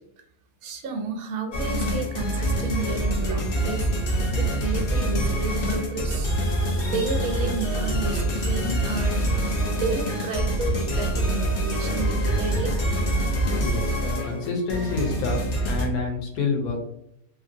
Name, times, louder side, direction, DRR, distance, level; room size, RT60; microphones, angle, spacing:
voice 1, 0.6-3.9 4.3-6.3 6.8-12.7, right 4 dB, 75° right, 4 dB, 1.0 m, -32 dB
sound 1, 1.5-15.9, right 1 dB, 55° left, 0.7 m, -25 dB
voice 2, 13.6-15.4 15.6-16.8, left 4 dB, 80° left, 2 dB, 1.2 m, -28 dB
2.9 x 2.6 x 2.5 m, 0.78 s
omnidirectional pair, 1.6 m